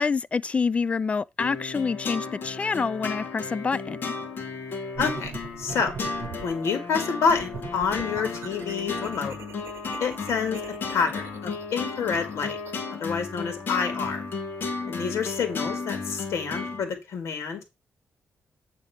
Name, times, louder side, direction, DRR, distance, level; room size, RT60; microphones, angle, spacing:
voice 1, 0.0-4.1, left 5 dB, 25° left, 0.3 m, -27 dB
sound 1, 1.4-16.8, left 4 dB, 50° left, 2.2 m, -34 dB
voice 2, 5.0-6.0 6.4-9.4 10.0-12.6 12.9-14.2 14.9-17.6, left 6 dB, 85° left, 2.1 m, -28 dB
sound 2, 5.0-6.6 7.3-12.8, right 6 dB, 60° right, 1.0 m, -42 dB
8.3 x 3.6 x 5.8 m
wide cardioid pair, 155°, 5 cm